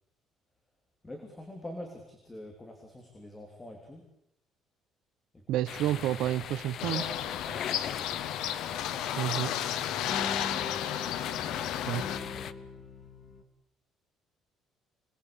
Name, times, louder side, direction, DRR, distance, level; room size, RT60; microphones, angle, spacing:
voice 1, 1.0-4.1 5.3-5.4 6.9-8.2 8.8-9.2 10.2-10.8, left 1 dB, 10° left, 3 dB, 3.3 m, -45 dB
voice 2, 5.5-7.0 9.2-9.5 11.9-12.0, right 13 dB, 70° right, 10 dB, 0.9 m, -30 dB
sound 1, 5.7-12.5, left 9 dB, 45° left, 1.0 m, -40 dB
sound 2, 6.8-12.2, left 11 dB, 90° left, 1.7 m, -33 dB
sound 3, 10.1-13.4, left 4 dB, 30° left, 2.5 m, -42 dB
26.5 x 20.0 x 8.8 m, 0.79 s
cardioid pair, 175°, 0 cm